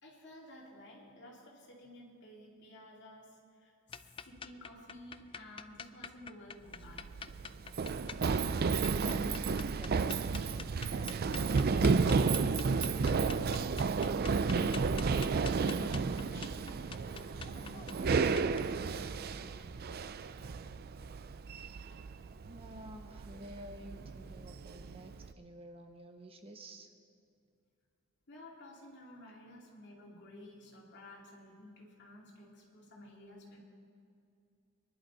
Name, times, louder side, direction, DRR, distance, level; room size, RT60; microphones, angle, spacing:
voice 1, 0.0-7.1 14.4-18.4 28.3-33.6, left 1 dB, 55° left, -2 dB, 2.8 m, -53 dB
sound 1, 3.9-18.6, left 6 dB, 25° left, 0.3 m, -48 dB
Run, 6.7-25.3, right 4 dB, 45° right, 0.4 m, -32 dB
voice 2, 9.2-12.8 22.5-26.9, right 1 dB, 25° right, 5 dB, 0.8 m, -51 dB
23.5 x 11.0 x 4.0 m, 2.5 s
head